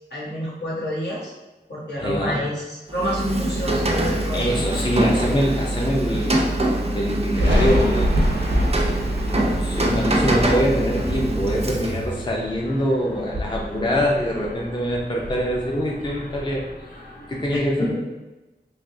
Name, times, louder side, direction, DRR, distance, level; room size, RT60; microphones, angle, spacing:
voice 1, 0.1-1.3 1.7-4.8 17.5-18.0, equal, 75° left, -6 dB, 1.1 m, -28 dB
voice 2, 2.0-2.4 4.3-6.6 6.9-8.2 8.5-16.6 17.3-17.9, equal, 25° left, -2 dB, 0.5 m, -24 dB
Rain, 2.9-12.2, right 1 dB, 35° right, 0.5 m, -24 dB
Thunder, 7.4-12.8 13.2-14.6 14.9-16.6, equal, 90° right, 0.7 m, -26 dB
Mechanisms, 10.9-17.6, right 1 dB, 45° left, 1.0 m, -38 dB
3.3 x 2.8 x 2.6 m, 1.1 s
wide cardioid pair, 50°, 18 cm